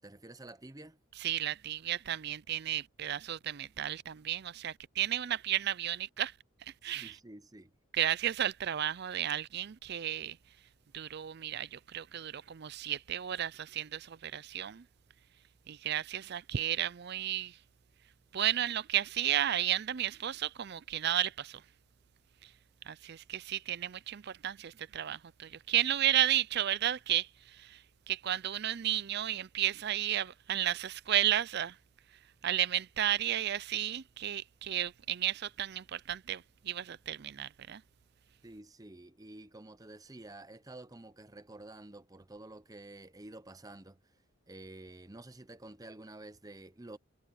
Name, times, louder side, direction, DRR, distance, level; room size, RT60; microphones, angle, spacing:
voice 1, 0.0-1.0 6.9-7.7 38.4-44.0 44.5-47.0, right 2 dB, 15° right, 0.8 m, -50 dB
voice 2, 1.2-6.3 6.6-7.2 7.9-10.4 10.9-14.9 15.7-17.6 18.3-21.6 22.4-22.5 22.8-31.8 32.1-37.8, right 11 dB, 50° right, 0.4 m, -33 dB
head